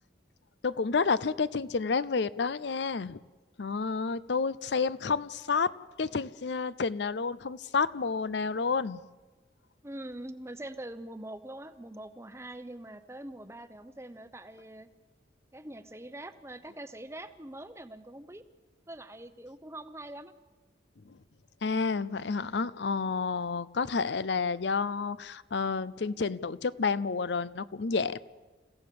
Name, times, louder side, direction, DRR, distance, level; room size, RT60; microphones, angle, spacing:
voice 1, 0.6-3.2 3.6-5.7 6.0-9.0 21.0-21.2 21.6-28.2, left 4 dB, 70° left, 17 dB, 0.6 m, -30 dB
voice 2, 9.8-14.9 15.5-18.4 18.9-20.3, right 1 dB, 15° right, 11 dB, 0.9 m, -43 dB
29.5 x 16.0 x 7.0 m, 1.3 s
head